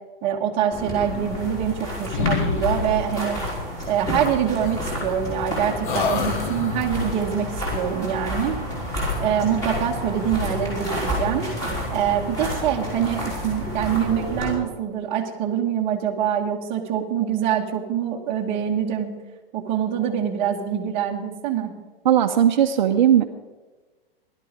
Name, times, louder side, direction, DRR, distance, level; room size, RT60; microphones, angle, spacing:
voice 1, 0.2-3.4 3.9-8.6 9.2-11.5 11.9-19.1 19.5-21.7, right 9 dB, 20° right, 0 dB, 1.3 m, -25 dB
sound 1, 0.7-14.5, equal, 10° left, 3.9 m, -30 dB
sound 2, 1.0-1.9 2.1-3.3 4.6-5.5 5.8-7.1, left 6 dB, 55° left, 1.4 m, -28 dB
voice 2, 22.0-23.2, right 10 dB, 50° right, 5 dB, 0.9 m, -17 dB
16.5 x 12.0 x 5.1 m, 1.2 s
hypercardioid pair, 175°, 29 cm